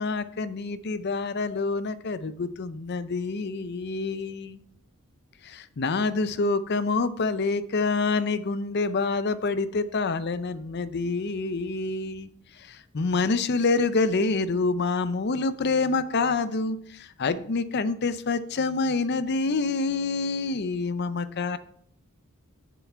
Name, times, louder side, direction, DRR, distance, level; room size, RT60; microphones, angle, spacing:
voice 1, 0.0-4.6 5.4-12.3 12.6-21.6, left 3 dB, 50° left, 12 dB, 0.5 m, -27 dB
7.2 x 7.0 x 4.5 m, 0.65 s
head